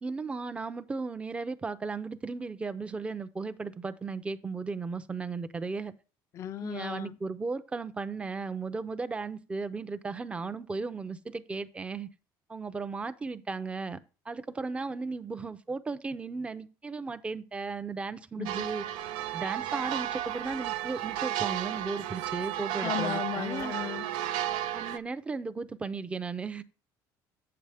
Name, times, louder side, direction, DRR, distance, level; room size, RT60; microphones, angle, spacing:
voice 1, 0.0-5.9 6.6-12.1 12.5-14.0 14.3-18.8 19.3-23.8 24.7-26.6, right 4 dB, 15° right, 0.5 m, -35 dB
voice 2, 6.3-7.2 18.4-18.7 22.8-24.1, left 12 dB, 40° left, 0.4 m, -35 dB
sound 1, 18.5-25.0, right 12 dB, 85° right, 0.5 m, -33 dB
8.2 x 7.8 x 3.4 m
cardioid pair, 140°, 8 cm